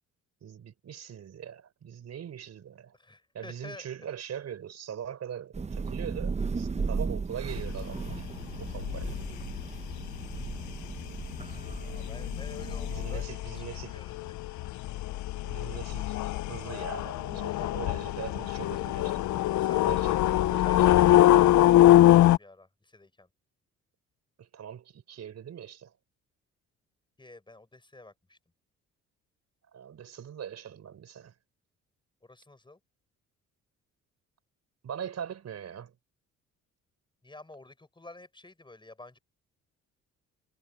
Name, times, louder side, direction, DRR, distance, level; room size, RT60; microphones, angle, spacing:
voice 1, 0.4-2.9 3.3-8.3 8.6-9.1 12.9-14.0 15.4-19.5 19.8-20.8 24.4-25.9 29.7-31.3 34.8-35.9, right 9 dB, 60° right, 5.0 m, -41 dB
voice 2, 2.9-3.8 11.8-13.3 13.7-14.4 17.4-17.7 19.6-23.3 27.2-28.4 32.2-32.8 37.2-39.2, left 2 dB, 15° left, 6.3 m, -50 dB
Thunder / Rain, 5.5-13.2, right 4 dB, 20° right, 0.7 m, -36 dB
sound 1, 7.5-22.4, left 14 dB, 75° left, 0.6 m, -24 dB
cardioid pair, 90°, 30 cm